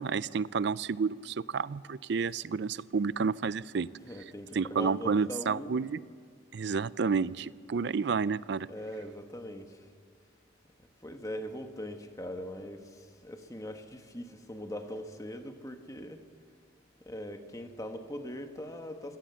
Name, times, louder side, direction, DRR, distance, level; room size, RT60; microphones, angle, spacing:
voice 1, 0.0-3.9 4.5-6.0 6.5-8.7, right 5 dB, 60° right, 19 dB, 0.4 m, -30 dB
voice 2, 4.0-6.0 8.7-9.9 11.0-16.2 17.0-19.2, equal, 15° left, 6 dB, 1.4 m, -41 dB
25.5 x 17.5 x 7.1 m, 2.2 s
head